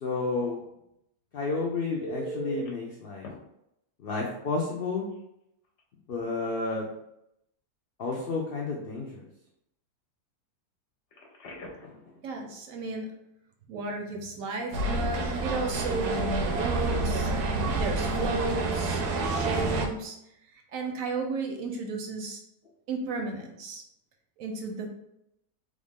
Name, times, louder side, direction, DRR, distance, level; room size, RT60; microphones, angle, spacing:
voice 1, 0.0-0.6 1.3-3.2 4.0-5.1 6.1-6.9 8.0-9.2 11.7-12.1, left 3 dB, 75° left, -1 dB, 0.5 m, -31 dB
Telephone, 2.0-2.7 3.2-3.3 5.1-5.2 5.6-5.8 11.1-12.0 19.1-19.3, right 2 dB, 60° left, 0.9 m, -39 dB
voice 2, 12.2-13.1 13.7-20.2 20.7-22.4 22.9-23.8 24.4-24.9, right 3 dB, 70° right, 3 dB, 0.9 m, -34 dB
sound 1, 14.7-19.9, right 2 dB, 85° right, 1.1 m, -28 dB
3.5 x 2.5 x 3.5 m, 0.81 s
omnidirectional pair, 1.6 m